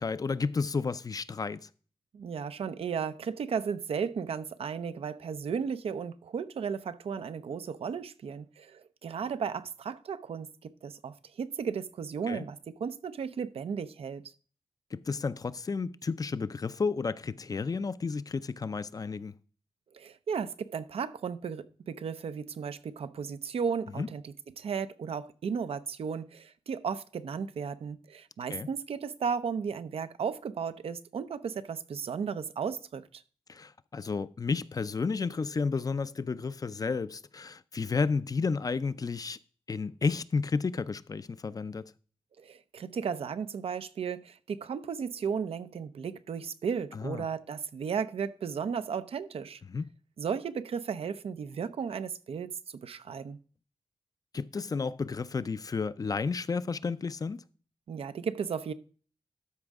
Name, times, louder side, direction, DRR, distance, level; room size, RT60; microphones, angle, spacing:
voice 1, 0.0-1.7 12.3-12.5 14.9-19.4 24.0-24.1 28.5-28.7 33.5-39.4 39.7-41.9 46.9-47.3 49.7-49.9 54.3-57.4, left 4 dB, 40° left, 0.5 m, -32 dB
voice 2, 2.1-14.2 19.9-33.2 42.4-49.6 50.2-53.4 57.9-58.7, right 6 dB, 80° right, 0.6 m, -35 dB
13.0 x 5.1 x 3.6 m
wide cardioid pair, 90°, 10 cm